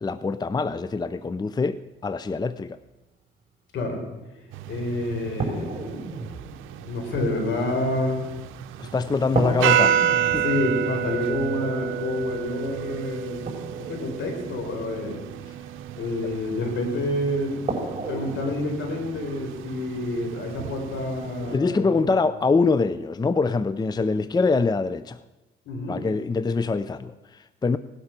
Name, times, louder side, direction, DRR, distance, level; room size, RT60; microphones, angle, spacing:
voice 1, 0.0-2.8 8.8-9.9 10.3-10.4 21.5-25.2 25.9-27.8, left 4 dB, 20° left, 14 dB, 0.5 m, -24 dB
sound 1, 4.5-4.6 5.4-8.8 9.4-15.5 16.8-16.9 17.7-18.6, right 2 dB, 30° right, 3.9 m, -33 dB
sound 2, 4.5-21.6, right 10 dB, 90° right, 0.7 m, -30 dB
voice 2, 4.7-5.8 6.9-8.2 9.3-9.5 10.4-13.4 13.8-15.2 15.9-17.8 18.1-22.1 24.0-24.1 25.7-26.1, left 2 dB, 70° left, 3 dB, 4.5 m, -28 dB
17.5 x 11.5 x 5.9 m, 1.1 s
cardioid pair, 90°, 20 cm